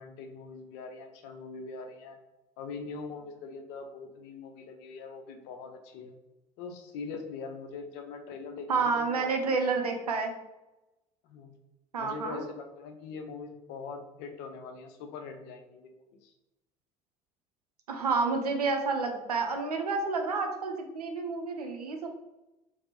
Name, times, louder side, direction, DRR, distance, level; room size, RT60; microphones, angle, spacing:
voice 1, 0.0-2.2 2.6-6.1 6.6-9.8 11.2-11.6 12.0-15.9 16.2-16.3, left 4 dB, 60° left, 6 dB, 0.6 m, -42 dB
voice 2, 8.7-10.3 11.9-12.4 17.9-22.1, right 4 dB, 85° right, 4 dB, 0.5 m, -29 dB
4.2 x 2.0 x 3.0 m, 0.98 s
figure-of-eight pair, 55°, 19 cm